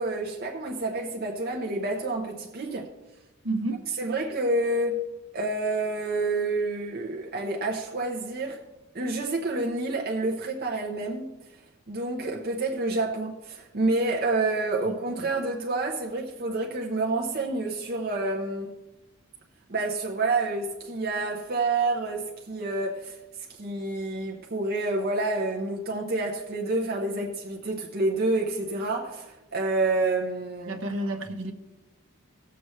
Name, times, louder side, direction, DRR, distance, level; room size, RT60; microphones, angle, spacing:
voice 1, 0.0-2.9 4.0-5.0 5.3-8.6 8.9-11.3 11.9-18.7 19.7-23.2 23.5-30.8, right 2 dB, 45° right, 0.9 m, -28 dB
voice 2, 3.4-3.8 14.9-15.3 30.7-31.5, right 1 dB, 60° right, 1.2 m, -31 dB
17.5 x 6.9 x 3.3 m
head